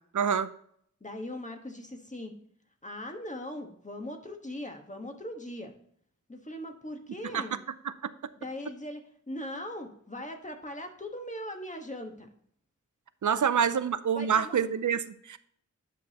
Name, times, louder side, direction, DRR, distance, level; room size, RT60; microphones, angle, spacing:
voice 1, 0.1-0.5 7.3-7.4 8.0-8.1 13.2-15.4, right 7 dB, 75° right, 14 dB, 0.5 m, -26 dB
voice 2, 1.0-2.3 2.8-5.7 6.3-7.7 8.4-12.3 13.3-13.4 14.1-14.6, left 1 dB, 25° left, 4 dB, 1.3 m, -40 dB
9.7 x 6.2 x 2.9 m, 0.64 s
wide cardioid pair, 60°, 30 cm